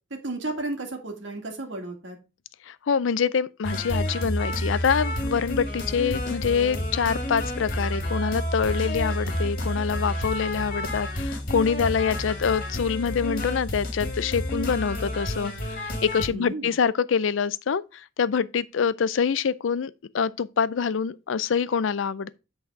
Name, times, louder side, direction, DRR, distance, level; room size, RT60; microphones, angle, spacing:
voice 1, 0.1-2.2 16.3-16.8, right 2 dB, 70° right, 2.0 m, -33 dB
voice 2, 2.7-22.4, left 6 dB, 85° left, 0.4 m, -25 dB
sound 1, 3.6-16.3, left 1 dB, 45° left, 2.0 m, -30 dB
7.8 x 4.1 x 4.6 m
head